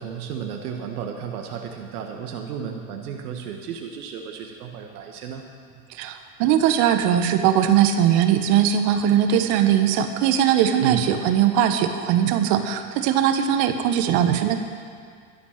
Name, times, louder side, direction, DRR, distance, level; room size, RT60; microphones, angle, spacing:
voice 1, 0.0-5.4 10.8-11.1, right 8 dB, 70° right, 3 dB, 1.4 m, -33 dB
voice 2, 6.0-14.6, right 9 dB, 55° right, 8 dB, 1.3 m, -20 dB
11.5 x 11.0 x 6.6 m, 2.1 s
hypercardioid pair, 85°, 45 cm